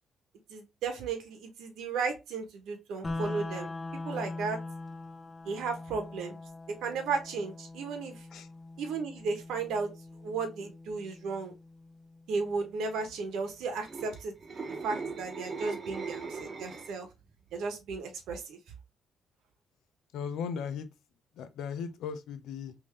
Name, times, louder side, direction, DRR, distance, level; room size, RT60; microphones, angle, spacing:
voice 1, 0.5-4.6 5.4-6.4 6.8-8.3 8.8-9.9 10.2-11.5 12.3-14.3 14.8-17.1 17.5-18.6, right 4 dB, 80° right, 1.0 m, -34 dB
sound 1, 3.0-13.0, left 2 dB, 25° left, 0.7 m, -42 dB
sound 2, 13.7-17.1 17.5-17.8, right 4 dB, 35° right, 0.9 m, -39 dB
voice 2, 20.1-20.9 21.4-22.7, left 6 dB, 85° left, 0.6 m, -37 dB
3.6 x 2.7 x 3.1 m
cardioid pair, 90°, 0 cm